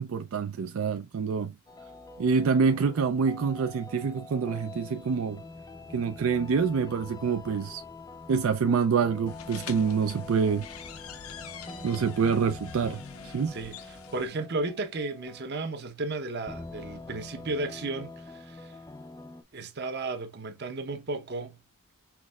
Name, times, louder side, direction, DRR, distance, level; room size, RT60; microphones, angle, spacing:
voice 1, 0.0-1.5 2.2-5.4 5.9-7.8 8.3-10.7 11.8-13.0 13.2-13.5, right 5 dB, 70° right, 0.4 m, -26 dB
sound 1, 1.7-15.8 16.5-19.4, left 2 dB, 15° left, 0.5 m, -45 dB
sound 2, 9.3-14.3, left 6 dB, 80° left, 0.8 m, -44 dB
voice 2, 13.5-18.8 19.5-21.6, right 2 dB, 50° right, 0.8 m, -34 dB
5.9 x 3.1 x 2.3 m
head